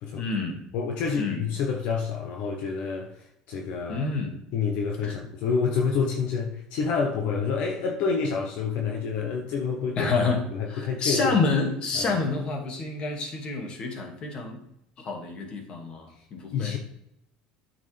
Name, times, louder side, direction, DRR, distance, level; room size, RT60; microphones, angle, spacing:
voice 1, 0.1-0.6 1.2-1.4 3.9-4.4 5.0-5.2 10.0-14.6 15.0-16.7, left 4 dB, 40° left, 2.2 m, -28 dB
voice 2, 0.7-4.1 4.5-10.1 10.5-11.4 11.9-12.2 16.5-16.8, left 5 dB, 65° left, 1.2 m, -28 dB
9.1 x 6.5 x 3.4 m
supercardioid pair, 120°, 2 cm